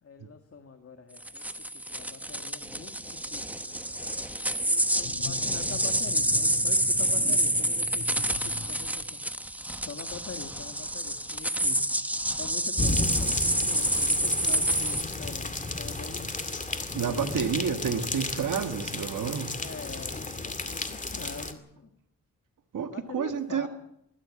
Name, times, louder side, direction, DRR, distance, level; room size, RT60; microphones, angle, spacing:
voice 1, 0.0-1.5 1.9-11.8 12.4-16.3 17.0-17.5 19.5-21.9 22.9-23.7, left 5 dB, 45° left, 6 dB, 2.0 m, -44 dB
sound 1, 1.2-15.0, right 1 dB, 5° right, 1.1 m, -28 dB
sound 2, 5.0-9.3, left 6 dB, 75° left, 2.7 m, -42 dB
sound 3, 12.8-21.5, left 2 dB, 25° left, 2.3 m, -33 dB
voice 2, 16.9-19.5 22.7-23.7, right 7 dB, 75° right, 7 dB, 1.8 m, -30 dB
21.0 x 15.0 x 8.6 m, 0.76 s
cardioid pair, 90°, 32 cm